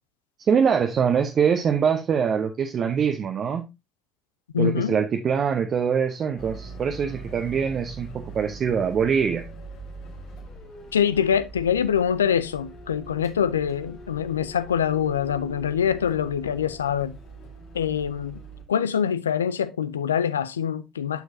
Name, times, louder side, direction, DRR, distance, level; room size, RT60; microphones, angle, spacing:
voice 1, 0.5-3.7 4.6-9.4, right 7 dB, 45° right, 0.7 m, -23 dB
voice 2, 4.5-4.9 10.9-17.1 17.7-18.4 18.7-21.2, left 8 dB, 85° left, 0.4 m, -24 dB
sound 1, 6.4-18.6, right 2 dB, 60° left, 1.9 m, -42 dB
8.1 x 6.4 x 2.6 m
figure-of-eight pair, 50°, 0 cm